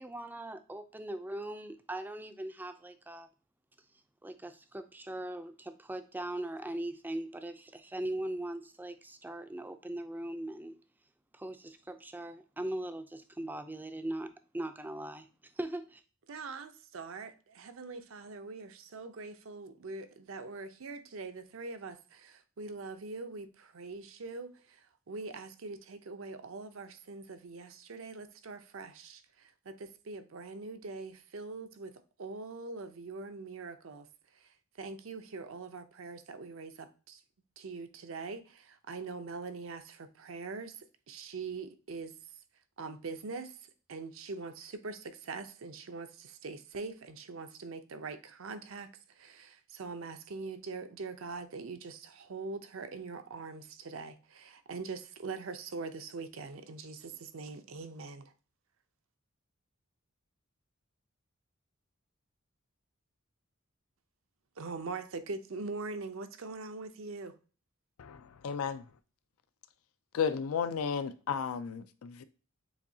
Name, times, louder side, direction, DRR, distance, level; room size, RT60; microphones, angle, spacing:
voice 1, 0.0-3.3 4.2-10.8 11.3-16.0, right 1 dB, 10° right, 0.4 m, -40 dB
voice 2, 16.3-34.1 34.3-37.2 37.6-42.2 42.8-43.6 43.9-58.3 64.6-67.4, right 4 dB, 65° right, 0.6 m, -43 dB
voice 3, 68.0-68.8 70.1-72.2, left 6 dB, 80° left, 0.4 m, -33 dB
7.1 x 2.7 x 2.7 m
head